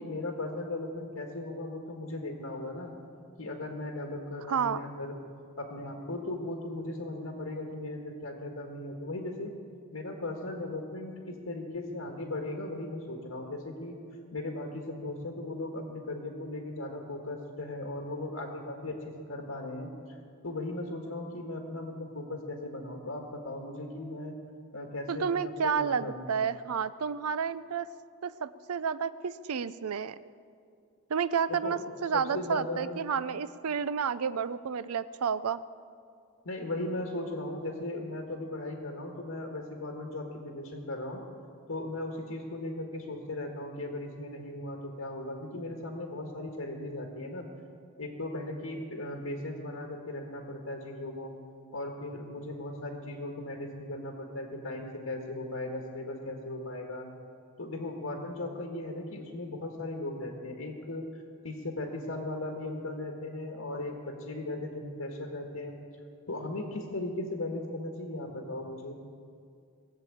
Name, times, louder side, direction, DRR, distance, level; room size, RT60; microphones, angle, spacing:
voice 1, 0.0-2.9 3.4-5.1 5.6-9.5 9.9-14.0 14.3-19.0 19.3-20.2 20.4-24.4 24.7-26.3 31.5-31.8 32.1-33.0 36.4-41.2 41.7-47.5 48.0-51.3 51.7-57.1 57.6-61.0 61.4-65.8 66.3-69.0, left 2 dB, 80° left, 1 dB, 1.6 m, -37 dB
voice 2, 4.5-4.8 25.1-27.9 28.2-30.2 31.1-35.6, right 6 dB, 90° right, 16 dB, 0.5 m, -30 dB
20.5 x 7.5 x 8.6 m, 2.4 s
head